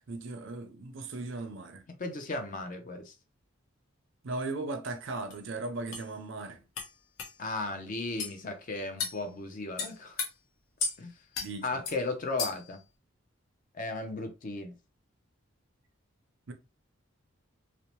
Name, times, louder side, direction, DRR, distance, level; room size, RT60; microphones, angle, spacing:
voice 1, 0.0-1.8 4.2-6.6 11.4-11.7 16.5-16.6, right 3 dB, 60° right, 0.5 m, -37 dB
voice 2, 2.0-3.1 7.4-10.2 11.0-11.1 11.6-12.8 13.7-14.7, left 2 dB, 40° left, 0.5 m, -35 dB
sound 1, 5.3-5.4 5.9-6.1 6.8-6.9 7.2-7.3 8.2-8.4 9.0-9.2 9.8-10.3 10.8-11.0 11.3-11.5 11.9-12.0 12.4-12.7, left 5 dB, 80° left, 0.7 m, -34 dB
2.7 x 2.0 x 3.0 m
head